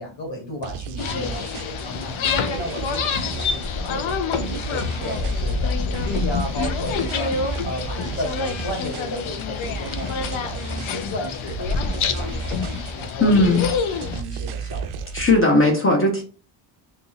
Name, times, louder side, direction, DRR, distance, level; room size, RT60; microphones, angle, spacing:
voice 1, 0.0-11.7 12.0-13.6 14.1-15.1, left 1 dB, 60° left, 2 dB, 1.2 m, -34 dB
sound 1, 0.6-15.4, right 6 dB, 90° right, 0.6 m, -34 dB
sound 2, 1.0-14.2, left 5 dB, 75° left, 0.6 m, -27 dB
voice 2, 13.2-13.7 15.1-16.2, left 2 dB, 25° left, -1 dB, 0.7 m, -17 dB
2.9 x 2.6 x 3.9 m, 0.37 s
wide cardioid pair, 165°, 49 cm